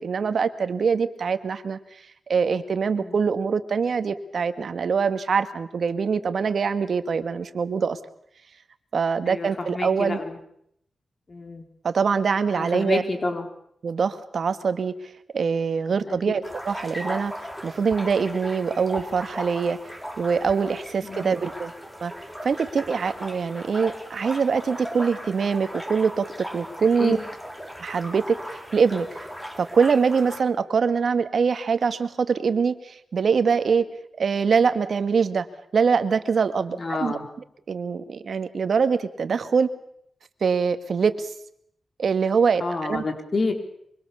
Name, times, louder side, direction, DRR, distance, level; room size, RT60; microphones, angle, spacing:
voice 1, 0.0-1.8 2.3-8.0 8.9-10.2 11.8-13.0 13.8-15.0 15.3-17.3 17.6-19.8 20.2-21.7 22.0-22.1 22.4-27.2 27.8-29.2 29.6-33.9 34.2-35.5 35.7-37.2 37.7-39.7 40.4-41.3 42.0-43.0, right 5 dB, 65° right, 11 dB, 1.8 m, -23 dB
voice 2, 9.3-10.3 11.3-11.6 12.5-13.5 16.1-16.2 21.0-21.3 27.0-27.2 36.7-37.3 42.6-43.5, left 3 dB, 45° left, 6 dB, 4.3 m, -29 dB
sound 1, 16.4-30.4, equal, 5° left, 3.9 m, -37 dB
24.5 x 24.5 x 7.1 m, 0.72 s
cardioid pair, 70°, 0 cm